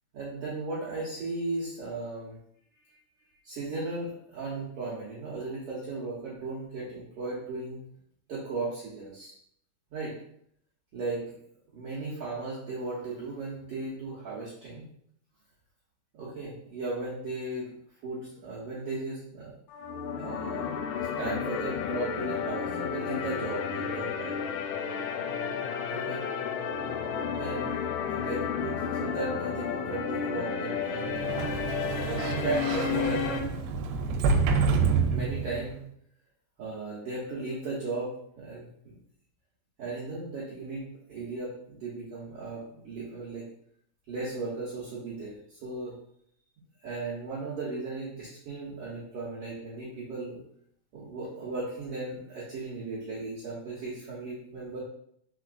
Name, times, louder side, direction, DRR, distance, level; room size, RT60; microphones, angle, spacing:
voice 1, 0.1-2.4 3.4-7.8 8.3-9.3 9.9-10.1 10.9-11.3 11.7-14.8 16.1-17.7 18.0-19.5 20.1-24.3 25.9-26.2 27.3-27.8 28.1-31.4 32.1-33.5 35.1-35.8 36.6-39.0 39.8-43.5 44.1-46.0 46.8-50.4 50.9-54.8, right 3 dB, 70° right, -7 dB, 1.4 m, -36 dB
sound 1, 19.7-33.4, left 7 dB, 80° left, 2.1 m, -32 dB
Sliding door, 31.1-35.8, right 5 dB, 90° right, 2.3 m, -28 dB
4.4 x 4.4 x 2.5 m, 0.69 s
omnidirectional pair, 4.0 m